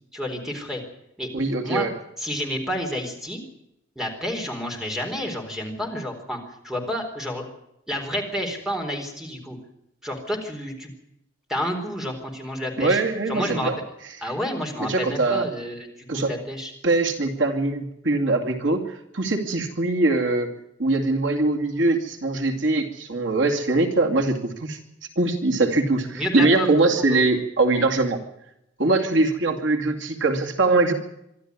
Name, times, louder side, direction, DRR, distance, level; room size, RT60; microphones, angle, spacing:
voice 1, 0.1-0.8 1.2-1.3 1.6-1.9 2.2-3.4 4.0-6.4 6.6-7.4 7.9-9.6 10.0-10.9 11.5-13.0 13.3-13.7 14.2-16.7 26.1-26.7 27.1-27.2, equal, ahead, 2 dB, 4.0 m, -29 dB
voice 2, 1.3-1.9 12.8-13.8 14.8-15.5 16.1-16.3 16.8-20.5 20.8-24.8 25.2-28.2 28.8-30.9, right 2 dB, 70° right, 3 dB, 2.4 m, -22 dB
24.5 x 13.0 x 9.6 m, 0.81 s
head